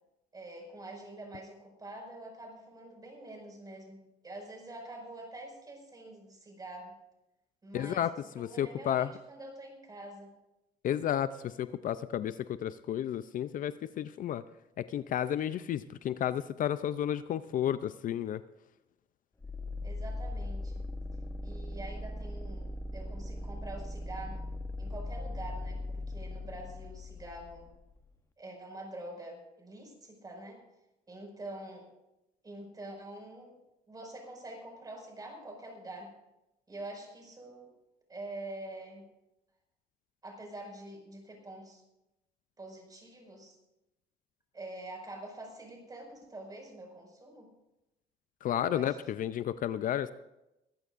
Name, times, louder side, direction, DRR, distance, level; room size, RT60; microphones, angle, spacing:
voice 1, 0.3-7.0 7.6-10.3 19.8-20.8 21.4-24.5 24.8-27.7 28.4-30.6 31.1-31.9 32.4-33.6 33.9-36.1 36.7-37.7 38.1-39.1 40.2-41.8 42.6-43.6 44.5-47.5 48.5-49.0, right 1 dB, 20° right, 2 dB, 5.5 m, -46 dB
voice 2, 7.7-9.1 10.8-14.4 14.8-18.4 48.4-50.1, left 10 dB, 55° left, 14 dB, 0.5 m, -32 dB
sound 1, 19.4-28.1, left 1 dB, 15° left, 0.8 m, -39 dB
23.0 x 15.0 x 2.6 m, 0.92 s
cardioid pair, 110°, 17 cm